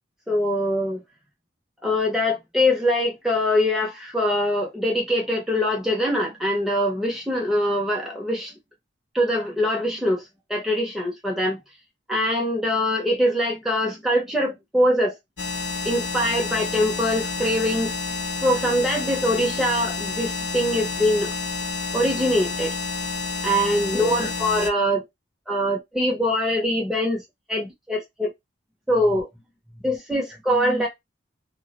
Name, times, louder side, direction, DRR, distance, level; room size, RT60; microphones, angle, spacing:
voice 1, 0.3-1.0 1.8-8.5 9.1-10.2 10.5-11.6 12.1-15.2 15.8-17.9 18.4-21.4 21.9-22.7 23.4-25.0 25.5-27.2 27.5-28.3 28.9-29.3 29.8-30.9, equal, ahead, 0.5 m, -23 dB
sound 1, 15.4-24.7, left 4 dB, 65° left, 0.7 m, -29 dB
2.2 x 2.0 x 2.8 m
head